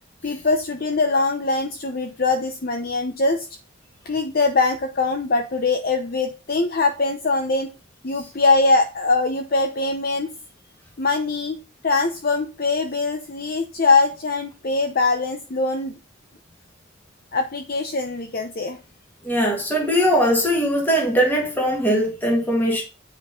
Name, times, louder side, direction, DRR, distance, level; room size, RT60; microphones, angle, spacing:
voice 1, 0.2-3.5 4.1-7.7 8.0-10.3 11.0-11.6 11.8-15.9 17.3-18.8, left 3 dB, 45° left, 0.7 m, -22 dB
voice 2, 19.2-22.8, equal, 10° left, 1.9 m, -20 dB
8.5 x 5.3 x 3.8 m
head